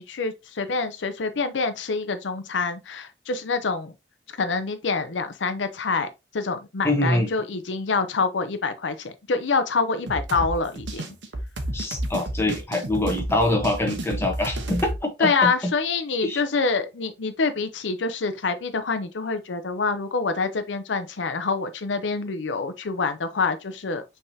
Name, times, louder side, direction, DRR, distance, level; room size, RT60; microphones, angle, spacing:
voice 1, 0.0-3.9 4.4-6.1 6.3-11.2 15.2-24.0, left 4 dB, 90° left, 0.6 m, -26 dB
voice 2, 6.8-7.3 11.7-15.7 16.2-16.4, left 1 dB, 15° left, 1.0 m, -24 dB
sound 1, 10.1-15.0, right 1 dB, 85° right, 0.9 m, -31 dB
5.5 x 3.5 x 2.7 m
head